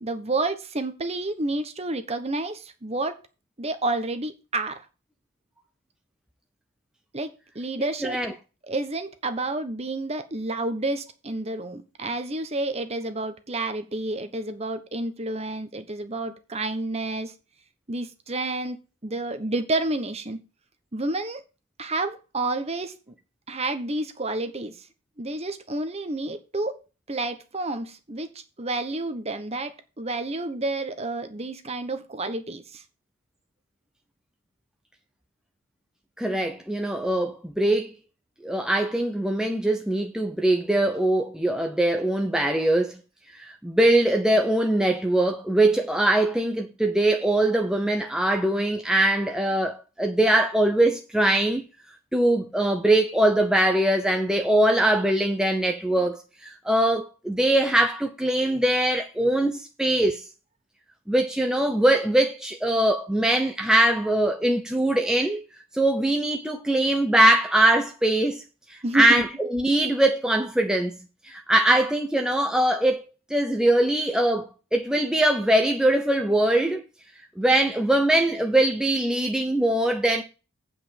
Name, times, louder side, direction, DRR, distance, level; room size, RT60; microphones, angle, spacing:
voice 1, 0.0-3.2 3.6-4.8 7.1-7.3 7.5-8.2 8.6-17.3 17.9-18.8 19.0-20.4 20.9-21.4 21.8-23.1 23.5-24.8 25.2-26.8 27.1-28.3 28.6-32.8 68.8-69.2, right 2 dB, 30° right, 1.1 m, -30 dB
voice 2, 7.8-8.3 36.2-37.9 38.4-43.0 43.3-51.7 52.1-60.2 61.1-65.4 65.7-68.4 68.7-71.0 71.2-73.0 73.3-76.8 77.4-80.2, right 1 dB, 5° right, 0.7 m, -22 dB
8.6 x 5.1 x 7.3 m
head